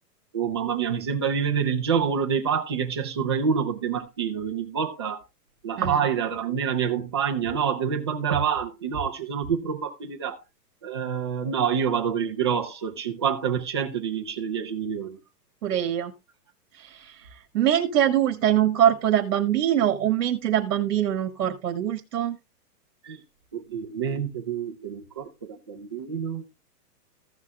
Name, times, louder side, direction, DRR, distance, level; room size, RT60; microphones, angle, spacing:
voice 1, 0.3-5.2 5.6-10.4 10.8-15.2 23.0-23.2 23.5-26.4, right 7 dB, 15° right, 0.6 m, -27 dB
voice 2, 15.6-16.1 16.8-17.1 17.5-22.4, right 10 dB, 60° right, 1.6 m, -23 dB
15.0 x 6.0 x 3.4 m
hypercardioid pair, 175°, 48 cm